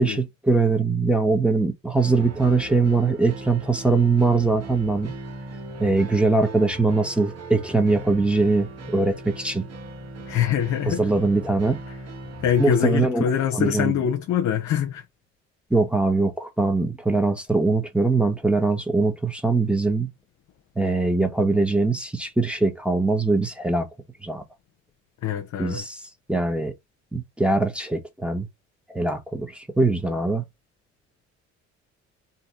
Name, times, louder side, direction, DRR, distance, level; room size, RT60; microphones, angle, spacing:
voice 1, 0.0-5.1 5.8-9.6 10.8-11.8 12.6-13.2 13.5-13.9 15.7-20.1 20.8-23.9 24.2-24.4 25.6-26.0 26.3-26.7 27.1-28.5 28.9-30.4, right 3 dB, 5° right, 1.2 m, -22 dB
sound 1, 2.0-12.9, right 2 dB, 45° right, 1.4 m, -39 dB
voice 2, 10.3-11.0 12.4-15.0 25.2-25.8, left 9 dB, 55° left, 0.8 m, -24 dB
4.0 x 2.8 x 3.6 m
hypercardioid pair, 50°, 35 cm